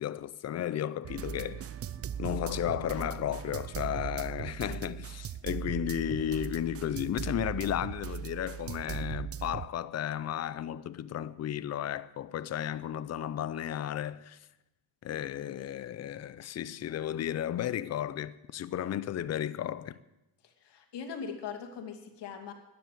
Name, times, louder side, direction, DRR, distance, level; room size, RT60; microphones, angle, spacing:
voice 1, 0.0-1.7 2.2-14.4 15.0-20.0, left 11 dB, 35° left, 0.6 m, -34 dB
sound 1, 1.0-9.7, right 9 dB, 35° right, 0.5 m, -38 dB
voice 2, 20.4-22.5, left 6 dB, 65° left, 2.6 m, -41 dB
13.0 x 10.5 x 9.3 m
cardioid pair, 130°, 44 cm